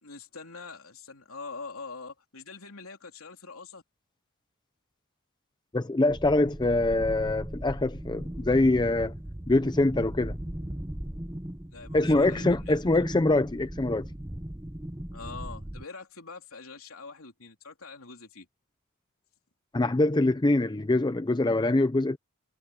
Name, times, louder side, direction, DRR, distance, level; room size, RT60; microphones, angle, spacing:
voice 1, 0.0-3.8 11.7-12.8 15.1-18.5, left 4 dB, 75° left, 3.5 m, -44 dB
voice 2, 5.7-9.1 9.5-10.4 11.9-14.1 19.7-22.2, left 2 dB, 20° left, 0.6 m, -24 dB
sound 1, 6.1-15.8, right 1 dB, 10° right, 0.8 m, -37 dB
head